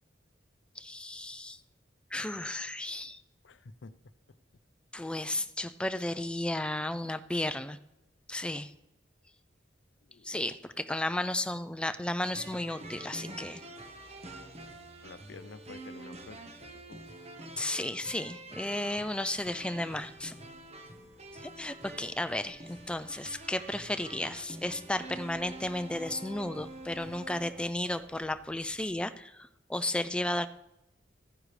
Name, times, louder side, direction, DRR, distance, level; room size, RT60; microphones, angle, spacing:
voice 1, 0.8-1.6 2.1-3.2 4.9-7.8 8.3-8.7 10.2-13.6 17.6-20.3 21.4-30.5, left 1 dB, 5° left, 10 dB, 0.4 m, -34 dB
voice 2, 3.4-3.9 10.1-10.4 15.0-17.0 22.7-22.8, left 4 dB, 70° left, 14 dB, 0.6 m, -50 dB
sound 1, 12.2-27.5, right 2 dB, 35° right, 1.1 m, -46 dB
sound 2, 18.7-29.0, equal, 70° right, 4.6 m, -62 dB
14.5 x 9.9 x 3.2 m, 0.86 s
head